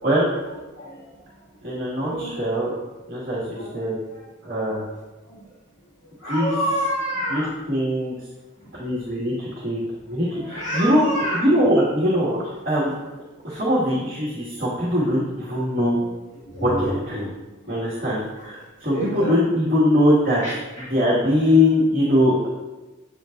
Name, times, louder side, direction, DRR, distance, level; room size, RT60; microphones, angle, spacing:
voice 1, 0.8-1.1 2.1-2.3 3.5-3.8 4.7-4.9 5.3-5.4 6.2-7.5 10.3-11.5 15.1-15.2 16.5-17.0 18.9-19.4 20.4-20.8, equal, 55° left, -9 dB, 2.3 m, -28 dB
voice 2, 1.6-2.7 3.1-4.0 4.4-4.8 6.3-6.5 7.3-8.1 8.8-9.8 10.1-11.0 11.3-12.9 13.4-16.0 16.6-17.3 17.7-20.4 20.9-22.5, left 1 dB, 45° right, -8 dB, 2.1 m, -21 dB
9.2 x 8.9 x 2.6 m, 1.1 s
head